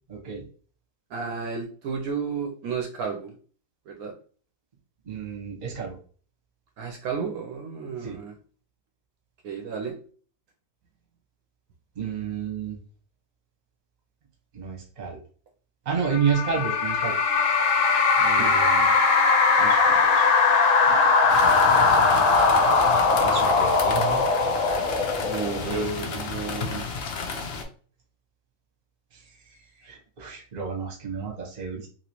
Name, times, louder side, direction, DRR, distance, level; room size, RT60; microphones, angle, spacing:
voice 1, 0.1-0.5 5.0-6.0 8.0-8.2 11.9-12.8 14.5-15.2 15.8-17.6 18.2-18.9 19.6-20.3 20.8-22.1 23.2-24.2 25.6-26.3 29.1-31.9, right 6 dB, 35° right, 0 dB, 0.9 m, -32 dB
voice 2, 1.1-3.3 3.9-4.1 6.8-8.3 9.4-10.0 18.0-18.5 25.1-26.8, right 5 dB, 70° right, 2 dB, 1.0 m, -32 dB
sound 1, 16.1-25.8, left 4 dB, 65° left, 0.9 m, -20 dB
sound 2, 21.3-27.6, left 4 dB, 80° left, 0.5 m, -33 dB
3.0 x 2.8 x 2.9 m, 0.43 s
omnidirectional pair, 1.7 m